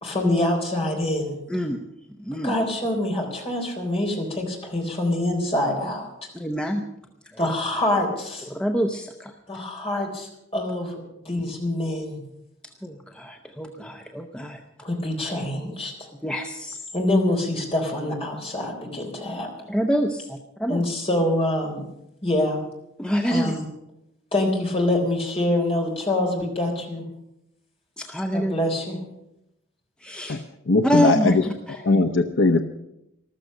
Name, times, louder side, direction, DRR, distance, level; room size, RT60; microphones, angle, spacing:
voice 1, 0.0-1.4 2.3-6.1 7.4-8.5 9.5-12.2 14.8-16.1 16.9-19.5 20.7-21.8 22.2-22.6 23.3-23.6 24.3-27.0 28.3-29.0, left 1 dB, 30° left, 1 dB, 3.8 m, -25 dB
voice 2, 1.5-1.8 2.2-2.5 6.3-6.9 7.3-7.4 8.5-9.3 12.8-14.6 16.2-16.8 19.7-20.8 23.0-23.6 28.0-28.5 30.0-30.4 30.8-31.8, equal, 5° left, 4 dB, 0.7 m, -26 dB
voice 3, 30.7-31.4 31.8-32.6, left 3 dB, 65° left, 8 dB, 0.7 m, -19 dB
14.0 x 13.0 x 6.6 m, 0.84 s
head